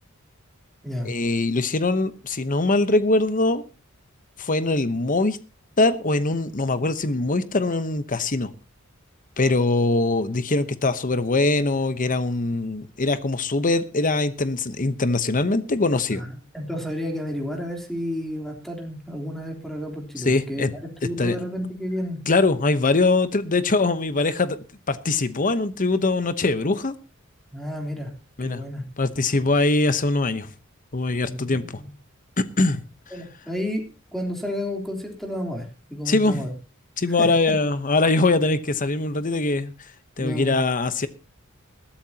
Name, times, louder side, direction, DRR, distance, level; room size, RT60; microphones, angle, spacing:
voice 1, 1.0-3.6 4.4-5.4 5.8-8.5 9.4-16.2 20.2-20.7 21.0-21.3 22.3-24.6 24.9-26.9 28.4-28.6 29.0-30.5 30.9-31.6 32.4-32.8 36.1-36.4 37.0-39.7 40.2-41.1, left 2 dB, 40° left, 12 dB, 1.0 m, -22 dB
voice 2, 16.1-22.2 27.5-28.1 28.4-28.8 31.3-31.8 33.1-33.8 34.1-36.5 37.2-37.3 40.2-40.5, equal, ahead, 1 dB, 3.4 m, -31 dB
20.5 x 13.0 x 2.9 m, 0.31 s
head